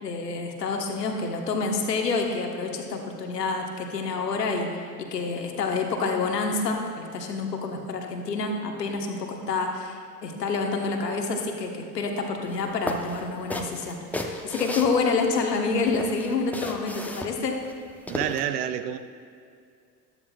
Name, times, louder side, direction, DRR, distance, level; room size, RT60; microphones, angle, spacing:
voice 1, 0.0-4.7 5.0-17.6, left 4 dB, 80° left, 3 dB, 1.3 m, -28 dB
sound 1, 12.5-12.6 12.9-15.5 15.9-18.4, left 1 dB, 5° left, 0.8 m, -34 dB
voice 2, 18.1-19.0, right 10 dB, 75° right, 11 dB, 0.7 m, -28 dB
14.0 x 12.5 x 2.4 m, 2.4 s
figure-of-eight pair, 65°, 48 cm